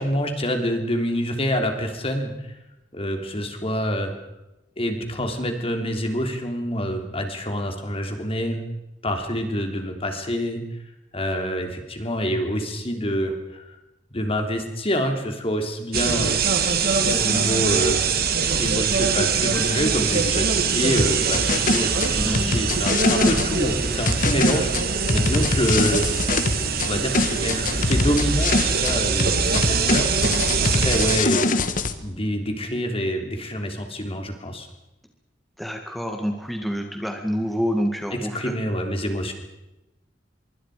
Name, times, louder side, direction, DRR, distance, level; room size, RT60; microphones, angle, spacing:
voice 1, 0.0-2.3 2.9-4.1 4.8-8.6 9.0-10.6 11.1-13.6 14.1-16.4 17.0-18.0 18.6-26.0 26.6-30.1 30.5-31.6 32.0-34.7 38.2-39.3, equal, 35° left, 5 dB, 3.4 m, -26 dB
sound 1, 15.9-31.2, right 5 dB, 60° right, 2.5 m, -23 dB
sound 2, 21.0-23.5 24.1-26.9 27.1-28.9 29.2-31.9, left 3 dB, 50° left, 1.6 m, -23 dB
voice 2, 22.2-22.7 35.6-38.5, equal, ahead, 3 dB, 2.0 m, -27 dB
25.5 x 23.5 x 5.0 m, 0.93 s
head